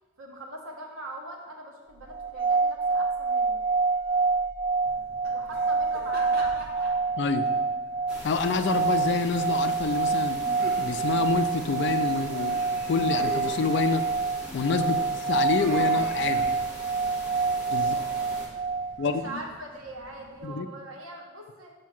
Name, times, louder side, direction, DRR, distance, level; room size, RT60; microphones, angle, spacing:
voice 1, 0.2-3.6 5.3-6.5 17.8-18.3 19.0-21.7, right 1 dB, 85° right, 0 dB, 1.1 m, -41 dB
sound 1, 2.1-19.2, right 4 dB, 20° right, 0.5 m, -27 dB
sound 2, 4.8-20.4, right 1 dB, 45° right, 1.0 m, -44 dB
voice 2, 7.2-7.5 8.2-10.4 10.8-14.0 14.5-16.5 17.7-17.9 19.0-19.4 20.4-20.7, left 4 dB, 55° left, 9 dB, 0.4 m, -27 dB
sound 3, 8.1-18.5, equal, 5° right, 1.1 m, -42 dB
7.1 x 2.8 x 5.8 m, 1.2 s
head